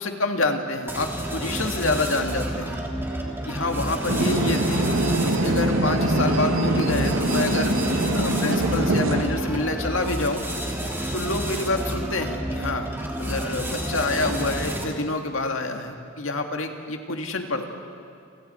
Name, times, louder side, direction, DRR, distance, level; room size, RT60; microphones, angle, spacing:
voice 1, 0.0-2.8 3.5-4.8 5.4-7.7 8.1-10.4 11.1-17.7, left 2 dB, 80° left, 4 dB, 2.0 m, -27 dB
sound 1, 0.9-15.1, right 1 dB, 10° right, 2.8 m, -30 dB
sound 2, 4.1-9.2, right 1 dB, 85° right, 2.2 m, -23 dB
30.0 x 28.0 x 4.4 m, 2.4 s
head